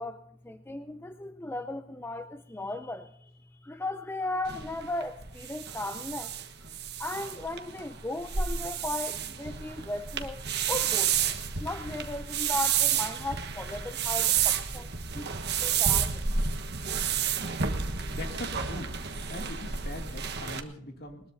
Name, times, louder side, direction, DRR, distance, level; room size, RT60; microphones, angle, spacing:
voice 1, 0.0-6.3 7.0-11.2 11.6-14.9 15.1-16.3, left 2 dB, 10° left, 9 dB, 0.5 m, -36 dB
sound 1, 4.5-20.6, right 7 dB, 50° right, 1.3 m, -30 dB
voice 2, 18.1-19.0 19.3-21.2, left 1 dB, 50° left, 3 dB, 2.5 m, -41 dB
21.5 x 20.5 x 2.7 m, 0.74 s
head